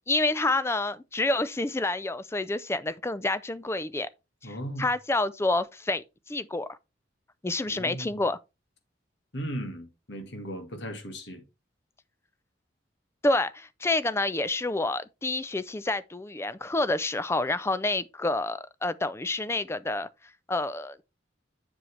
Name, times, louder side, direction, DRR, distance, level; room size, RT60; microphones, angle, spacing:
voice 1, 0.0-4.1 4.4-6.8 7.4-8.4 13.2-20.1 20.5-21.0, left 2 dB, 15° left, 0.4 m, -28 dB
voice 2, 4.4-4.9 7.7-8.2 9.3-11.4, equal, 60° left, 1.8 m, -37 dB
7.5 x 6.3 x 3.2 m
head